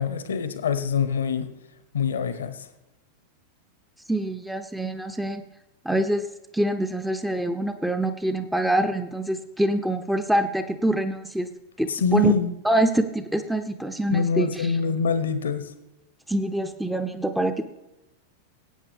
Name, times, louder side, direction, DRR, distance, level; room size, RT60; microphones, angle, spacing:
voice 1, 0.0-1.5 1.9-2.7 11.9-12.5 14.1-15.7, left 5 dB, 65° left, 11 dB, 1.0 m, -25 dB
voice 2, 4.1-5.4 5.8-6.3 6.5-11.5 11.8-12.3 12.6-14.7 16.3-17.6, right 1 dB, 5° right, 7 dB, 0.7 m, -25 dB
20.5 x 8.8 x 3.5 m, 0.99 s
figure-of-eight pair, 90°, 0 cm